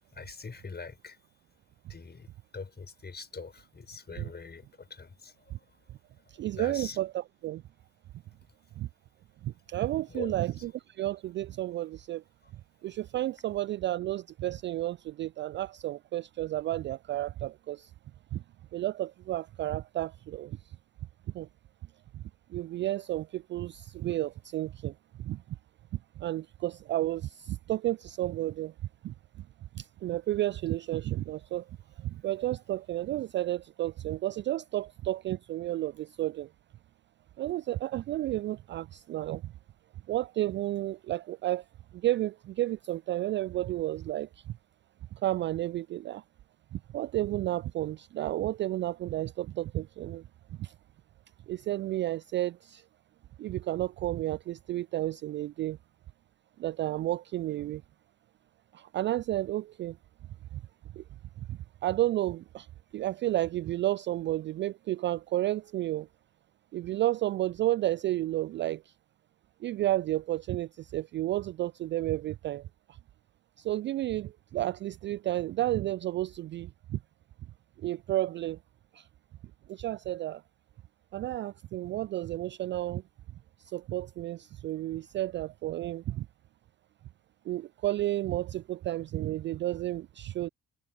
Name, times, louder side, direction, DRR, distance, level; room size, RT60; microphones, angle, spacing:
voice 1, 0.1-1.2 1.9-5.8 6.2-7.0 10.1-10.3 12.4-12.5, left 4 dB, 25° left, 5.7 m, -44 dB
voice 2, 6.4-7.6 8.8-8.9 9.4-12.2 12.8-17.9 18.3-18.4 18.7-20.6 21.3-21.5 22.1-22.2 22.5-24.9 25.2-25.4 26.2-28.7 29.0-29.1 29.7-31.6 32.0-36.5 37.4-39.5 40.1-41.6 41.9-44.3 45.1-46.2 46.7-50.2 50.6-50.7 51.5-52.8 53.4-55.8 56.6-57.8 58.7-60.0 61.0-61.1 61.5-62.7 62.9-66.1 66.7-68.8 69.6-72.6 73.6-77.0 77.8-78.6 78.9-79.0 79.7-80.4 81.1-83.0 83.6-86.3 87.5-90.5, right 14 dB, 35° right, 0.4 m, -32 dB
figure-of-eight pair, 45°, 36 cm